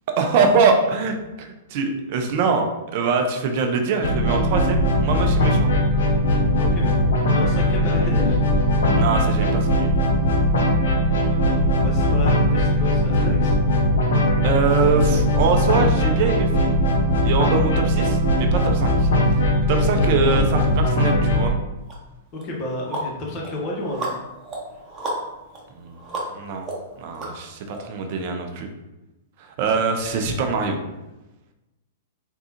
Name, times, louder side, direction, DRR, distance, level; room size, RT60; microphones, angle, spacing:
voice 1, 0.2-2.7 2.9-5.7 9.0-9.9 14.4-16.8 17.2-19.1 19.7-21.5 25.7-26.0 26.3-26.7 27.0-28.7 29.4-30.8, right 4 dB, 50° right, 5 dB, 0.5 m, -23 dB
sound 1, 4.0-21.5, equal, 65° left, 0.6 m, -19 dB
voice 2, 6.5-6.9 7.3-8.4 11.2-13.5 19.5-19.6 22.3-24.1, left 1 dB, 35° left, -2 dB, 1.0 m, -31 dB
sound 2, 21.9-22.0 22.4-27.8, right 2 dB, 20° right, 0.9 m, -34 dB
3.6 x 2.3 x 2.8 m, 1.0 s
hypercardioid pair, 110°, 0 cm